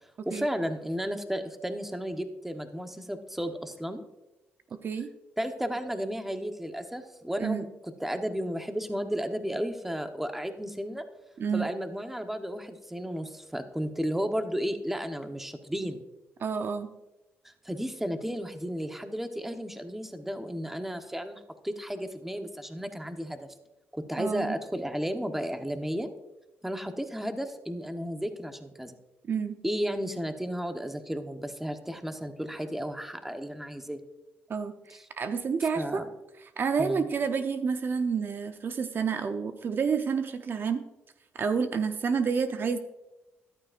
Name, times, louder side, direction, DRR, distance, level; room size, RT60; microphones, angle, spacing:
voice 1, 0.2-4.0 5.4-7.7 8.0-11.0 11.5-16.0 17.4-23.5 23.9-26.1 26.6-29.0 29.6-34.0 35.6-36.0 36.8-37.1, equal, 5° right, 7 dB, 1.0 m, -33 dB
voice 2, 11.4-11.7 16.4-16.9 24.2-24.5 29.2-29.6 34.5-36.0 36.4-40.8 41.3-42.8, right 5 dB, 50° right, 9 dB, 0.7 m, -29 dB
13.5 x 11.5 x 2.5 m, 0.98 s
cardioid pair, 90°, 5 cm